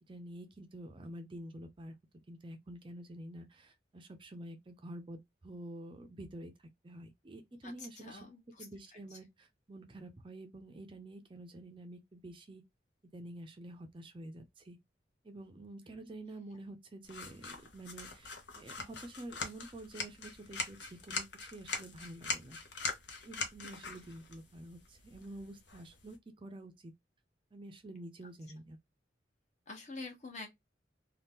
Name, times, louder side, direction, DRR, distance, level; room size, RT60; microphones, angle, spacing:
voice 1, 0.1-2.0 2.3-8.2 8.6-12.6 13.1-14.8 15.2-22.6 23.2-26.9 27.5-28.8, right 1 dB, 25° right, 0.4 m, -48 dB
voice 2, 7.6-8.7 9.1-9.2 29.7-30.5, left 3 dB, 40° left, 1.0 m, -46 dB
sound 1, 17.1-26.2, left 4 dB, 70° left, 0.9 m, -42 dB
2.8 x 2.3 x 3.4 m
head